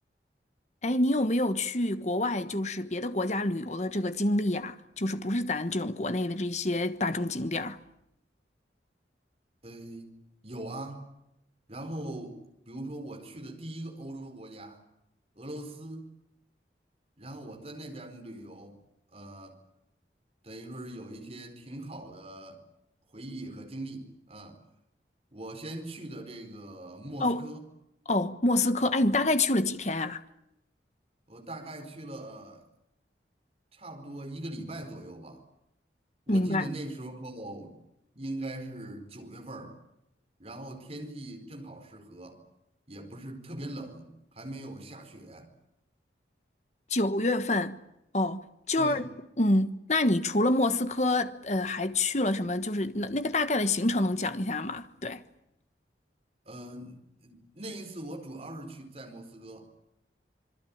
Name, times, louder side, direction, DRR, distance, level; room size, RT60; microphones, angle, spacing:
voice 1, 0.8-7.8 27.2-27.5 28.0-30.2 36.3-36.7 46.9-47.8 48.1-49.0 49.4-55.2, left 2 dB, 40° left, 1.3 m, -27 dB
voice 2, 9.6-11.1 11.7-12.4 12.7-14.8 15.4-16.1 17.2-18.8 19.1-19.6 20.4-22.6 23.1-24.6 25.3-27.6 31.3-32.6 33.7-35.4 36.3-37.8 38.1-39.8 40.4-42.4 42.9-45.5 48.8-49.1 56.4-56.9 57.2-59.7, right 1 dB, 35° right, 4.7 m, -41 dB
26.5 x 22.5 x 8.8 m
head